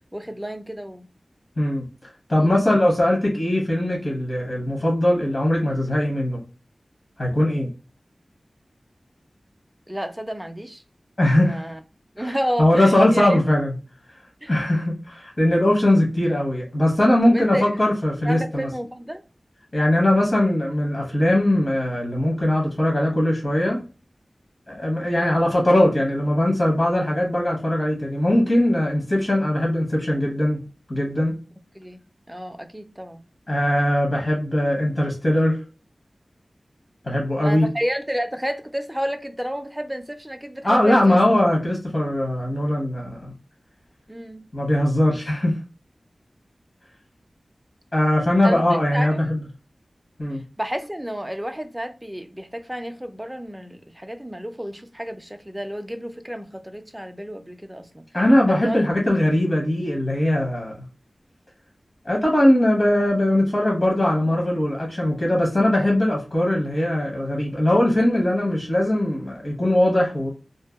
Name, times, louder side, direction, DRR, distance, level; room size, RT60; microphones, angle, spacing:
voice 1, 0.1-1.1 2.4-2.5 9.9-10.8 11.4-11.8 12.1-13.4 14.4-14.5 17.2-17.6 18.2-19.2 25.2-25.4 31.8-32.0 32.3-33.2 37.4-41.2 44.1-44.5 48.4-48.6 48.9-49.2 50.6-58.0 58.5-58.8, equal, 10° right, 0.3 m, -31 dB
voice 2, 1.6-1.9 2.3-6.4 7.2-7.7 11.2-11.6 12.2-12.3 12.6-13.7 14.5-18.7 19.7-23.8 24.7-30.6 30.9-31.3 33.5-35.6 37.0-37.7 40.6-43.3 44.5-45.6 47.9-49.4 50.2-50.4 58.1-60.7 62.0-70.3, left 1 dB, 45° left, 0.9 m, -20 dB
2.6 x 2.1 x 2.3 m
wide cardioid pair, 70°, 0 cm